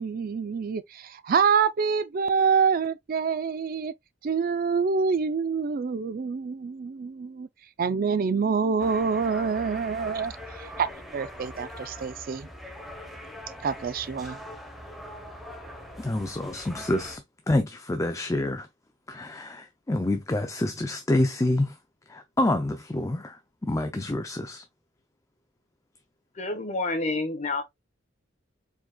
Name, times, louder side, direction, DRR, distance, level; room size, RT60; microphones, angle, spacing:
voice 1, 0.0-3.9 4.2-7.5 7.8-10.9 11.1-12.5 13.6-14.4, right 5 dB, 45° right, 0.4 m, -26 dB
sound 1, 8.8-17.2, left 1 dB, ahead, 1.0 m, -42 dB
voice 2, 16.0-18.7 19.1-21.8 22.1-24.6, left 1 dB, 15° left, 0.4 m, -27 dB
voice 3, 26.4-27.6, left 2 dB, 35° left, 1.0 m, -28 dB
4.8 x 4.0 x 2.2 m
head